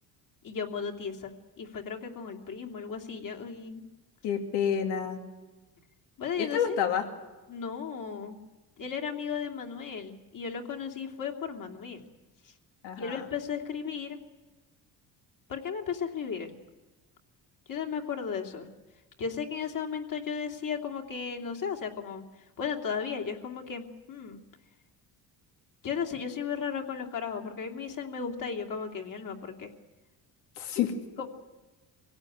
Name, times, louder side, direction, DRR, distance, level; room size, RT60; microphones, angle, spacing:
voice 1, 0.4-1.3 1.6-3.8 6.2-6.8 7.5-8.4 8.8-12.1 12.9-14.2 15.5-16.6 17.7-18.7 19.2-22.2 22.6-24.4 25.8-29.7 31.2-31.3, left 6 dB, 50° left, 2 dB, 2.9 m, -35 dB
voice 2, 4.2-5.2 6.4-7.1 12.8-13.2 30.6-31.0, left 8 dB, 90° left, 4 dB, 2.5 m, -29 dB
24.0 x 17.0 x 9.4 m, 1.2 s
cardioid pair, 100°, 40 cm